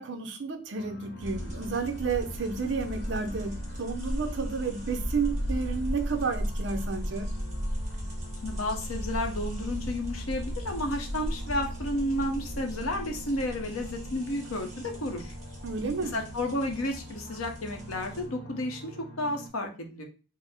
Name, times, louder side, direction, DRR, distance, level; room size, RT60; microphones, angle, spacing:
voice 1, 0.0-7.3 15.6-16.2, right 4 dB, 55° right, 7 dB, 0.5 m, -31 dB
sound 1, 0.8-19.5, right 1 dB, 70° left, 1.0 m, -46 dB
sound 2, 1.2-18.3, equal, 35° right, 1.2 m, -36 dB
voice 2, 8.4-15.3 16.1-20.0, left 1 dB, 90° left, 4 dB, 0.8 m, -32 dB
3.8 x 2.0 x 4.2 m, 0.35 s
head